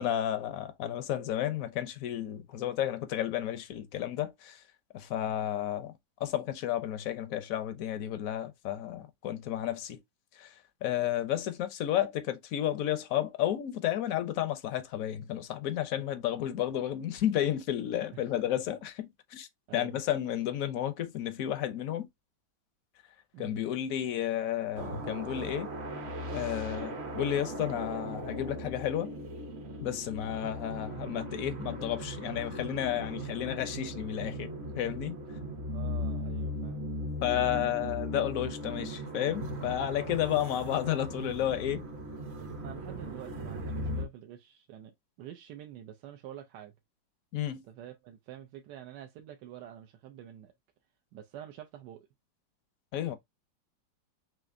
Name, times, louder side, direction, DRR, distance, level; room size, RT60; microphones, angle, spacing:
voice 1, 0.0-4.6 4.9-5.9 6.2-10.0 10.3-10.5 10.8-22.1 23.4-25.7 26.3-29.1 29.8-35.2 37.2-41.8 47.3-47.6 52.9-53.2, left 11 dB, 65° left, 0.9 m, -32 dB
voice 2, 19.7-20.0 23.3-23.6 35.7-36.9 42.6-46.7 47.6-50.5 51.1-52.1, right 11 dB, 75° right, 1.2 m, -47 dB
sound 1, 24.7-44.0, equal, 45° right, 0.9 m, -38 dB
5.9 x 2.4 x 2.5 m
omnidirectional pair, 2.0 m